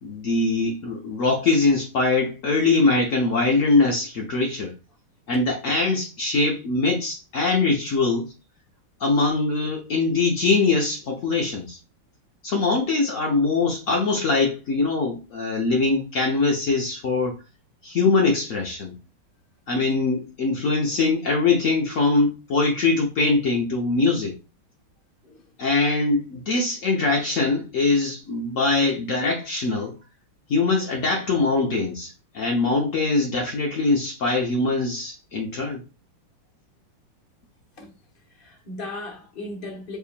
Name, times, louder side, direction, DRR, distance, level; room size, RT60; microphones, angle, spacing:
voice 1, 0.0-4.7 5.3-8.3 9.0-11.8 12.4-17.4 17.8-18.9 19.7-24.3 25.6-30.0 30.5-35.8, left 3 dB, 80° left, 0.7 m, -22 dB
voice 2, 38.3-40.0, left 2 dB, 40° left, 0.9 m, -36 dB
4.8 x 2.8 x 2.4 m
omnidirectional pair, 2.3 m